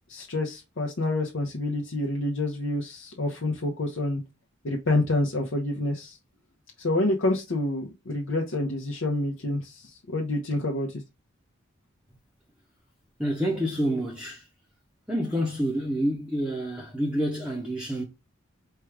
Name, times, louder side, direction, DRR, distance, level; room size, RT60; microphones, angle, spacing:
voice 1, 0.1-4.2 4.6-6.2 6.8-11.0, left 2 dB, 70° left, 0.8 m, -28 dB
voice 2, 13.2-14.5 15.1-18.0, equal, 5° right, 0.7 m, -28 dB
4.5 x 2.3 x 4.8 m
head